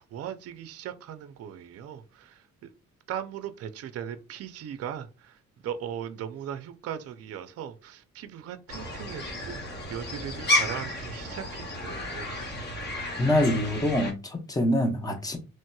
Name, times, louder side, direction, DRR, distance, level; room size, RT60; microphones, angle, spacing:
voice 1, 0.0-2.7 3.1-9.6 9.9-12.3, right 9 dB, 55° right, 0.4 m, -38 dB
sound 1, 8.7-14.1, left 1 dB, 35° left, 1.2 m, -32 dB
voice 2, 13.2-15.4, left 1 dB, 10° left, 0.7 m, -25 dB
3.0 x 2.8 x 2.2 m
cardioid pair, 90°, 30 cm